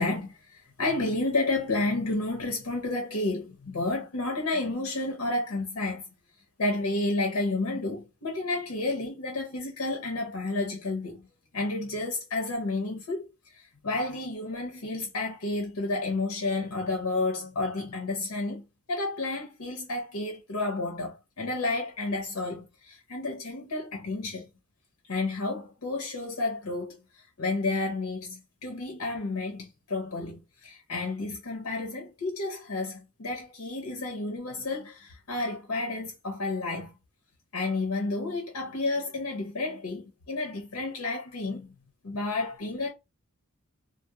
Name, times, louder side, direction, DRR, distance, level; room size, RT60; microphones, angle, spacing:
voice 1, 0.0-6.0 6.6-11.3 11.5-24.5 25.1-36.9 37.5-41.8 42.0-42.9, left 2 dB, 85° left, 0.7 m, -31 dB
2.2 x 2.0 x 2.8 m
head